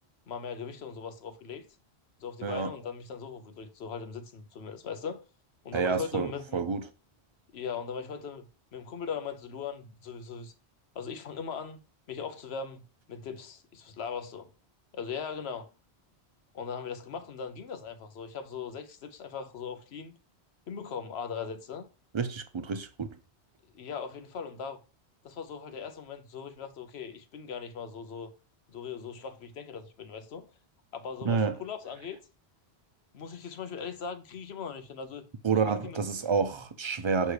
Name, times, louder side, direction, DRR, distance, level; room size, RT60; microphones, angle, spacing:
voice 1, 0.3-1.7 2.2-5.2 5.6-6.6 7.5-10.5 10.9-11.8 12.1-14.5 14.9-15.7 16.5-20.2 20.7-21.9 23.7-24.8 25.2-28.3 28.7-30.5 30.9-32.2 33.1-35.2 35.6-36.0, left 6 dB, 75° left, 1.0 m, -39 dB
voice 2, 5.7-6.8 22.1-23.1 31.2-31.5 35.4-37.3, right 5 dB, 40° right, 0.4 m, -29 dB
6.4 x 3.3 x 4.7 m
omnidirectional pair, 1.1 m